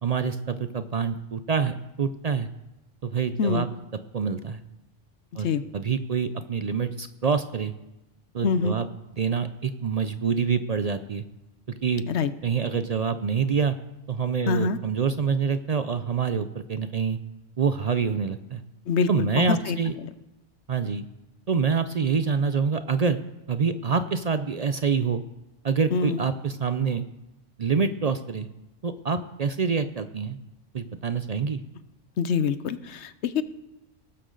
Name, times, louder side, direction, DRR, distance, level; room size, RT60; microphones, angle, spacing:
voice 1, 0.0-2.5 3.0-3.7 4.1-4.6 5.4-7.7 8.3-8.9 9.2-11.2 11.8-12.0 12.4-13.8 14.1-17.2 17.6-18.6 19.1-19.9 20.7-21.1 21.5-23.2 23.5-25.2 25.6-27.0 27.6-28.5 28.8-30.4 30.7-31.6, right 5 dB, 50° right, 10 dB, 0.5 m, -26 dB
voice 2, 8.4-8.8 12.1-12.3 14.5-14.8 18.9-19.3 19.7-19.8 25.9-26.2 32.2-33.4, left 5 dB, 70° left, 13 dB, 1.0 m, -25 dB
18.5 x 12.5 x 3.9 m, 0.97 s
omnidirectional pair, 1.2 m